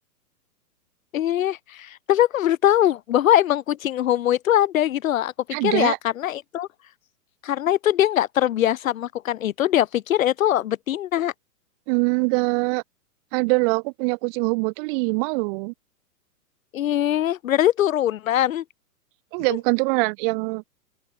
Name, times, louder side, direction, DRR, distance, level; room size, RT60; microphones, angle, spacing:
voice 1, 1.1-5.3 5.6-6.7 7.4-11.3 16.7-18.6, left 12 dB, 55° left, 5.2 m, -22 dB
voice 2, 5.5-6.0 11.9-12.8 13.3-15.7 19.3-20.6, right 31 dB, 35° right, 6.9 m, -23 dB
open air
hypercardioid pair, 155°, 48 cm